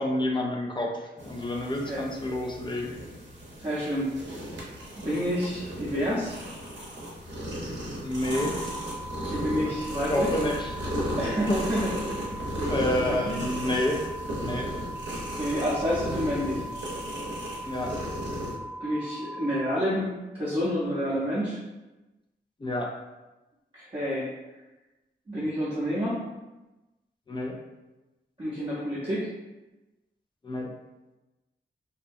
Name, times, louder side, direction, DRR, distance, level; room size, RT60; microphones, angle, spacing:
voice 1, 0.0-2.9 8.0-8.7 10.1-10.7 11.5-11.6 12.4-14.0 14.4-14.7 17.7-17.9 22.6-22.9 27.3-27.6 30.4-30.7, left 1 dB, 25° left, 0 dB, 0.3 m, -29 dB
sound 1, 1.2-18.5, equal, 65° right, 0.7 m, -35 dB
voice 2, 3.6-4.2 5.0-6.4 9.2-10.3 11.2-12.3 12.6-12.8 13.0-13.4 15.3-16.6 18.8-20.1 20.4-21.6 23.7-24.3 25.3-26.2 28.4-29.3, equal, 30° right, -11 dB, 0.6 m, -29 dB
sound 2, 8.3-19.6, right 1 dB, 50° left, 1.0 m, -40 dB
2.6 x 2.1 x 2.5 m, 1.1 s
wide cardioid pair, 120°, 20 cm